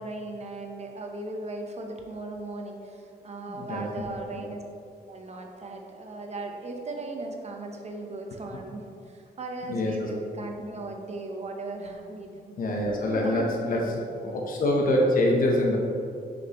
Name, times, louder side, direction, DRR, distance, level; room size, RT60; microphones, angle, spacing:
voice 1, 0.0-4.6 5.1-12.5 13.0-13.9 14.3-14.4, right 2 dB, 40° right, 2 dB, 0.8 m, -37 dB
voice 2, 3.5-3.8 9.7-9.9 12.6-14.0 14.2-15.8, left 1 dB, 55° left, -1 dB, 0.8 m, -24 dB
6.3 x 5.2 x 3.0 m, 2.5 s
wide cardioid pair, 120°, 17 cm